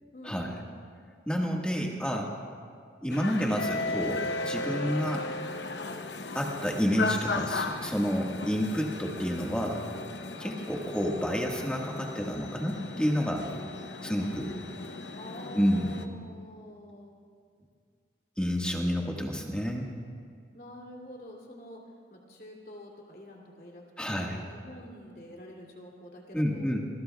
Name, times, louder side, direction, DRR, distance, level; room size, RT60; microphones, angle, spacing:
voice 1, 0.1-0.8 10.4-10.6 15.1-17.1 18.6-19.0 20.5-21.8 22.1-23.8 24.1-26.7, left 1 dB, 50° left, 0 dB, 2.9 m, -47 dB
voice 2, 1.2-2.3 3.0-5.3 6.3-9.8 10.4-13.5 14.0-14.6 15.5-15.9 18.4-19.9 24.0-24.4 26.3-26.8, equal, 5° left, -1 dB, 1.6 m, -29 dB
sound 1, 3.1-16.0, left 3 dB, 70° left, 0.9 m, -36 dB
28.5 x 21.0 x 2.4 m, 2.1 s
head